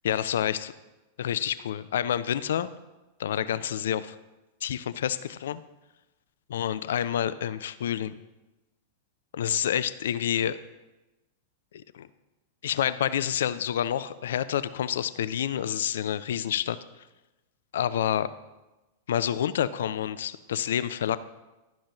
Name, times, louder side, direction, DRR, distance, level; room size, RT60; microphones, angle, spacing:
voice 1, 0.0-0.7 1.2-2.7 3.2-4.2 4.6-5.6 6.5-8.2 9.3-10.6 11.7-12.1 12.6-16.8 17.7-18.3 19.1-21.2, left 10 dB, 65° left, 15 dB, 0.3 m, -28 dB
12.0 x 6.2 x 3.0 m, 1.1 s
figure-of-eight pair, 95°, 0 cm